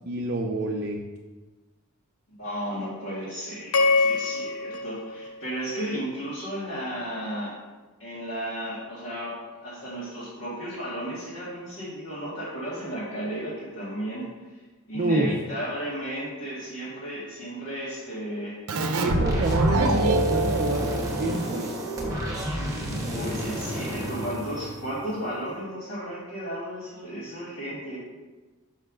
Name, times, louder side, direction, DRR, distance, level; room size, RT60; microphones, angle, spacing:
voice 1, 0.1-1.0 14.9-15.3 19.0-20.9 21.2-21.7, right 2 dB, 45° right, 0 dB, 0.5 m, -27 dB
voice 2, 2.4-7.5 8.0-14.3 14.9-18.6 22.9-28.0, equal, 55° left, -10 dB, 2.0 m, -34 dB
sound 1, 3.7-6.1, left 3 dB, 75° left, 0.6 m, -26 dB
Keyboard (musical), 18.7-22.1, right 2 dB, 85° right, 0.7 m, -26 dB
sound 2, 19.1-25.3, right 1 dB, 15° right, 1.2 m, -29 dB
5.7 x 4.5 x 6.1 m, 1.2 s
head